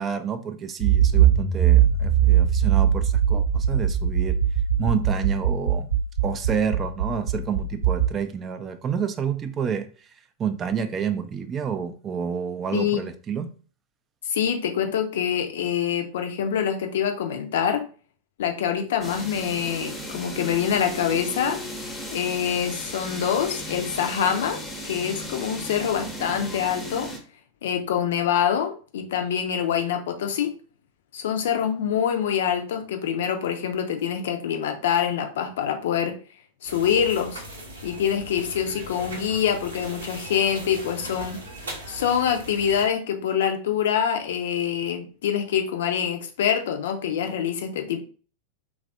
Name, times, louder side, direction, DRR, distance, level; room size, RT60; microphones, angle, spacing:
voice 1, 0.0-4.4 4.8-5.9 6.2-9.9 10.4-13.5, right 7 dB, 25° right, 0.3 m, -29 dB
Accelerating revving vroom, 0.8-8.1, right 9 dB, 85° right, 1.1 m, -21 dB
voice 2, 14.3-17.8 18.4-21.6 22.1-27.1 27.6-30.5 31.1-36.2 36.6-37.4 37.8-41.4 41.9-48.0, left 8 dB, 60° left, 0.4 m, -25 dB
sound 1, 19.0-27.2, equal, 15° left, 0.7 m, -36 dB
sound 2, 36.7-42.9, right 1 dB, 70° right, 0.7 m, -39 dB
3.2 x 2.4 x 2.5 m
figure-of-eight pair, 90°, 0 cm